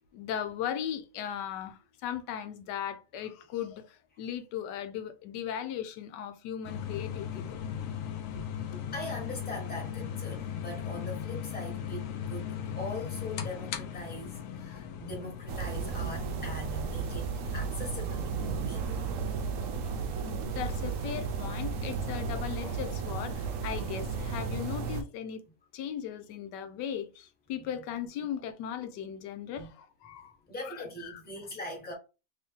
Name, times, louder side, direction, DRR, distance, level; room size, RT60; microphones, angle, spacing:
voice 1, 0.1-7.6 8.7-8.8 14.7-14.8 20.2-25.4 25.7-30.3 30.6-31.2, left 9 dB, 90° left, 1.2 m, -38 dB
sound 1, 6.6-22.6, left 8 dB, 70° left, 0.8 m, -39 dB
voice 2, 8.9-19.0 27.6-27.7 29.6-29.7 30.5-31.9, left 1 dB, 5° left, 1.0 m, -41 dB
sound 2, 15.5-25.0, right 5 dB, 65° right, 0.8 m, -34 dB
3.1 x 2.7 x 3.5 m
omnidirectional pair, 1.8 m